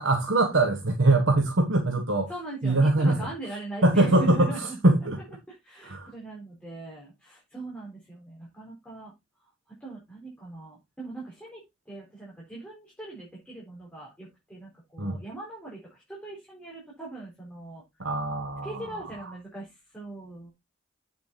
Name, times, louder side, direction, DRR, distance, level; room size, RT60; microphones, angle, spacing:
voice 1, 0.0-2.3 2.6-3.3 3.8-4.5 4.8-5.2 5.9-6.1 15.0-15.2 18.0-18.7, right 2 dB, 75° right, 1.5 m, -22 dB
voice 2, 2.3-4.8 5.5-9.1 9.8-17.8 18.6-20.5, right 2 dB, 5° left, 4.5 m, -40 dB
8.3 x 7.0 x 4.1 m
head